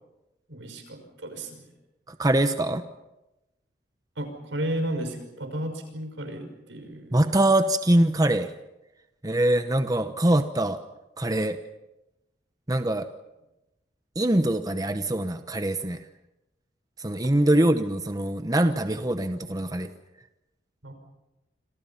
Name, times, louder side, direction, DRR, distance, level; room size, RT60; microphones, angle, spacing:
voice 1, 0.5-1.7 4.2-7.3 20.8-20.9, right 1 dB, 80° right, 7 dB, 5.9 m, -33 dB
voice 2, 2.1-2.8 7.1-8.5 9.2-10.8 11.2-11.6 12.7-13.1 14.2-16.0 17.0-19.9, right 1 dB, 20° right, 8 dB, 0.9 m, -23 dB
27.5 x 27.0 x 5.7 m, 0.97 s
head